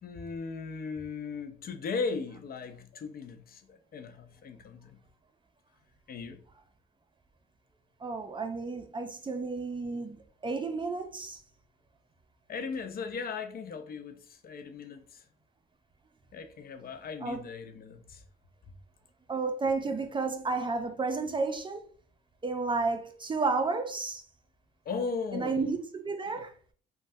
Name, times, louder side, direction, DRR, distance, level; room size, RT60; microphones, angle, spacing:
voice 1, 0.0-5.0 6.1-6.4 12.5-15.2 16.3-18.2 18.7-18.8 19.8-20.1 24.9-25.7 26.3-26.5, left 4 dB, 50° left, 0.4 m, -38 dB
voice 2, 8.0-10.2 10.4-11.4 17.2-17.4 19.3-21.8 22.4-24.2 25.3-26.5, right 4 dB, 25° right, 0.5 m, -31 dB
3.2 x 2.2 x 2.6 m
cardioid pair, 90°, 20 cm